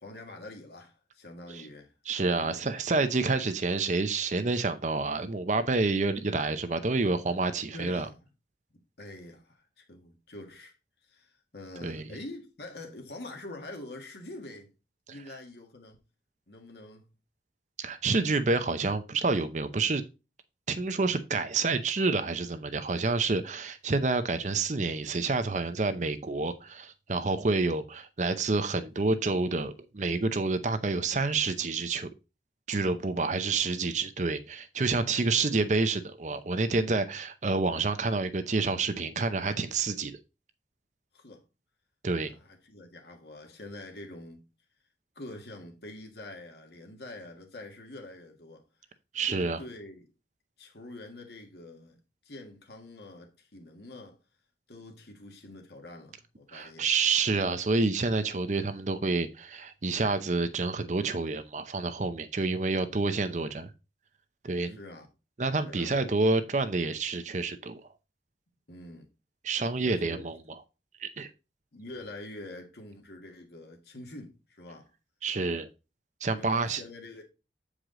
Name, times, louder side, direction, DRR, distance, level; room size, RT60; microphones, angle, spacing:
voice 1, 0.0-1.9 2.3-2.7 7.7-8.2 9.0-10.7 11.1-14.7 15.1-16.0 16.5-17.1 35.3-35.6 41.1-41.4 42.2-44.4 45.2-48.6 49.2-50.1 50.6-52.0 52.2-54.2 54.7-56.9 62.6-62.8 64.6-65.1 65.6-66.2 68.7-69.1 69.8-70.3 71.7-74.9 76.3-77.3, left 2 dB, 65° left, 1.7 m, -45 dB
voice 2, 2.1-8.1 11.8-12.1 17.8-20.0 20.7-32.1 32.7-40.2 42.0-42.3 49.1-49.6 56.5-63.7 64.4-64.8 65.4-67.8 69.4-70.4 71.0-71.3 75.2-75.7 76.2-76.8, right 3 dB, 40° right, 0.6 m, -28 dB
7.7 x 4.9 x 3.8 m
head